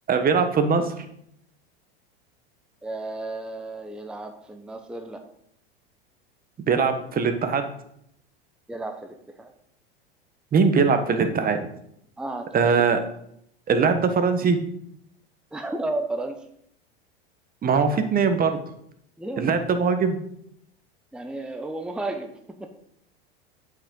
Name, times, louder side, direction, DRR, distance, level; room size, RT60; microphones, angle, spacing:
voice 1, 0.1-1.0 6.7-7.7 10.5-11.6 12.5-13.0 13.7-14.6 17.6-18.6 19.4-20.2, right 5 dB, 30° right, 8 dB, 1.3 m, -21 dB
voice 2, 2.8-5.2 8.7-9.5 12.2-12.5 15.5-16.4 19.2-19.6 21.1-22.3 22.6-22.7, right 2 dB, 5° right, 6 dB, 0.7 m, -33 dB
8.6 x 7.7 x 3.8 m, 0.73 s
hypercardioid pair, 95°, 31 cm